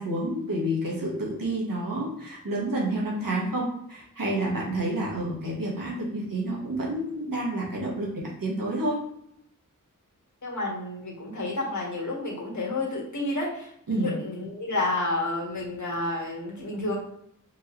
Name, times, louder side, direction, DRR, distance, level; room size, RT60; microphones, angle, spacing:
voice 1, 0.0-8.1 8.4-9.0 13.9-14.1, right 1 dB, 80° right, -4 dB, 1.5 m, -29 dB
voice 2, 10.4-17.0, left 2 dB, 60° left, -3 dB, 1.5 m, -30 dB
4.5 x 3.0 x 3.1 m, 0.74 s
wide cardioid pair, 55°, 33 cm